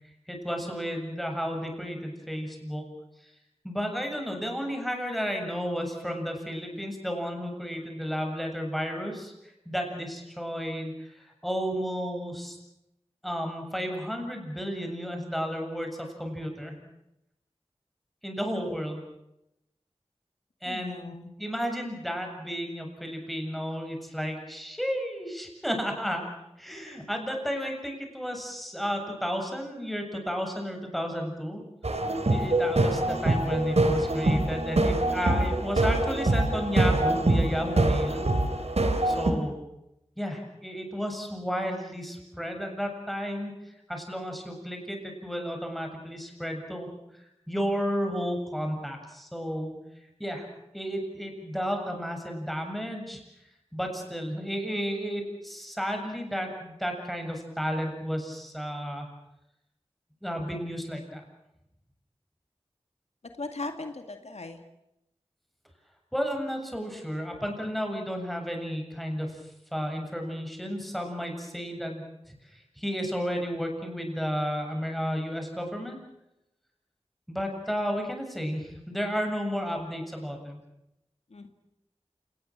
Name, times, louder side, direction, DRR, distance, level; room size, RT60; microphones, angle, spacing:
voice 1, 0.3-2.8 3.6-9.3 9.7-12.6 13.2-16.8 18.2-19.0 20.6-26.2 26.6-31.6 32.3-38.3 39.0-39.6 40.2-46.9 47.5-49.7 50.2-50.5 50.7-53.2 53.7-59.1 60.2-61.2 66.1-69.4 69.7-76.0 77.3-80.6, equal, ahead, 3 dB, 7.2 m, -32 dB
voice 2, 20.7-21.3 63.4-64.6 81.3-81.5, left 2 dB, 90° left, 6 dB, 2.1 m, -38 dB
sound 1, 31.8-39.3, right 2 dB, 75° right, 3.3 m, -24 dB
28.5 x 19.5 x 7.6 m, 0.86 s
wide cardioid pair, 50°, 11 cm